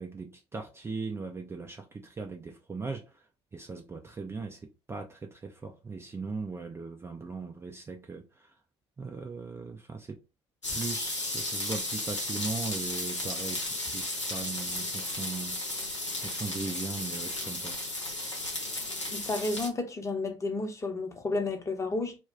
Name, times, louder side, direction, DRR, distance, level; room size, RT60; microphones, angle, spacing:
voice 1, 0.0-3.2 3.5-8.5 9.0-10.2 10.7-15.6 16.2-17.8, right 4 dB, 15° right, 0.4 m, -39 dB
sound 1, 10.6-19.7, left 1 dB, 90° left, 0.7 m, -34 dB
voice 2, 19.1-22.2, left 2 dB, 20° left, 0.8 m, -31 dB
2.3 x 2.1 x 3.6 m
figure-of-eight pair, 60°, 15 cm